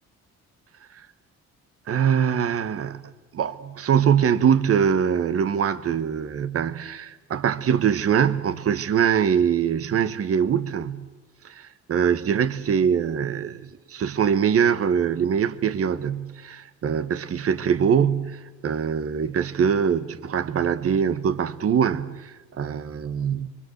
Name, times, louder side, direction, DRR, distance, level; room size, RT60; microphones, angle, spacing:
voice 1, 1.9-3.0 3.3-11.0 11.4-23.5, right 7 dB, 50° right, 1.2 m, -23 dB
25.0 x 24.0 x 7.9 m
cardioid pair, 90°, 30 cm